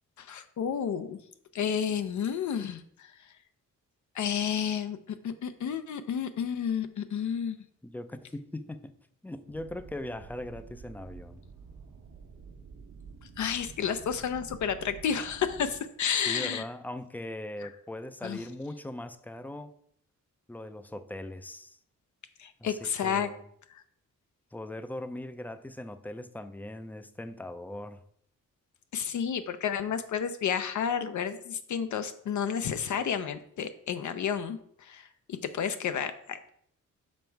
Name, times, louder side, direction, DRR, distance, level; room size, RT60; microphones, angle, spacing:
voice 1, 0.2-1.2 1.5-3.1 4.1-5.0 5.2-7.6 13.4-16.6 18.2-18.4 22.4-23.3 23.7-23.8 28.9-36.5, left 7 dB, 65° left, 0.5 m, -31 dB
voice 2, 7.8-9.0 9.2-11.4 16.3-19.7 20.5-21.8 22.6-23.4 24.5-28.0, left 1 dB, 5° left, 0.4 m, -40 dB
sound 1, 9.5-15.8, right 5 dB, 75° right, 1.1 m, -49 dB
6.2 x 5.3 x 4.5 m
wide cardioid pair, 140°, 31 cm